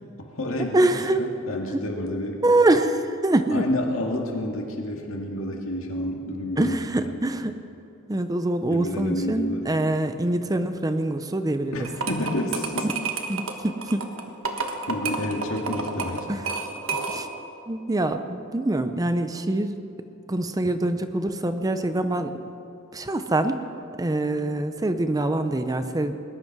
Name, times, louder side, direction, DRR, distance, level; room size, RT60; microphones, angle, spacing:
voice 1, 0.2-0.9 1.2-2.4 3.5-6.8 7.1-7.2 8.7-9.7 11.7-12.9 14.9-16.3, left 1 dB, 75° left, 1 dB, 2.0 m, -29 dB
voice 2, 0.7-1.2 1.7-1.8 2.4-3.7 6.6-7.5 8.1-11.9 12.8-12.9 13.3-14.1 16.3-16.4 17.1-17.3 17.7-19.8 20.3-22.4 22.9-23.6 24.0-26.2, right 2 dB, 15° right, 9 dB, 0.6 m, -24 dB
sound 1, 11.8-17.4, right 4 dB, 70° right, 1.4 m, -30 dB
20.0 x 11.0 x 6.0 m, 2.8 s
head